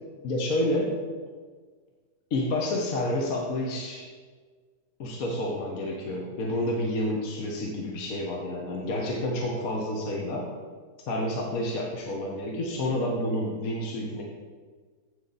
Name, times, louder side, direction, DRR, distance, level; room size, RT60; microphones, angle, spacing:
voice 1, 0.2-0.9 2.3-4.1 5.0-10.5 11.1-14.2, left 1 dB, 55° left, -2 dB, 1.5 m, -29 dB
14.5 x 5.3 x 4.0 m, 1.5 s
omnidirectional pair, 1.9 m